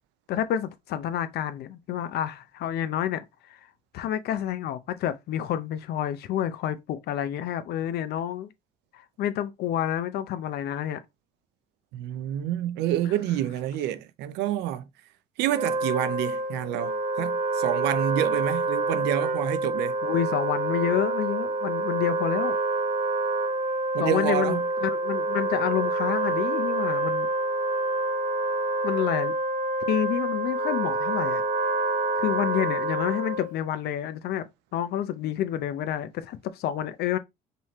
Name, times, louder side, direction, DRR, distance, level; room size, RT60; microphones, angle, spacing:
voice 1, 0.3-3.6 3.9-8.5 8.9-11.0 20.0-22.6 24.0-27.3 28.8-29.3 29.9-31.4 32.2-37.2, left 10 dB, 70° left, 0.7 m, -29 dB
voice 2, 11.9-14.9 15.4-20.0 23.9-24.7, right 12 dB, 90° right, 0.6 m, -28 dB
Wind instrument woodwind instrument, 15.4-33.6, right 2 dB, 50° right, 0.8 m, -27 dB
5.4 x 2.8 x 3.0 m
cardioid pair, 110°, 17 cm